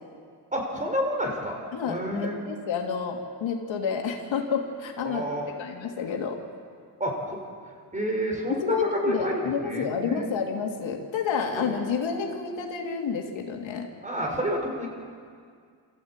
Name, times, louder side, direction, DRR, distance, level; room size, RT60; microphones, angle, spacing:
voice 1, 0.5-1.6 1.9-2.4 5.0-5.5 7.0-7.4 7.9-10.3 11.5-11.7 14.0-14.9, equal, 15° right, 0 dB, 5.1 m, -29 dB
voice 2, 1.7-5.3 5.6-6.4 8.5-13.9, left 6 dB, 80° left, 1 dB, 2.8 m, -29 dB
27.0 x 15.0 x 9.0 m, 2.1 s
cardioid pair, 100°, 45 cm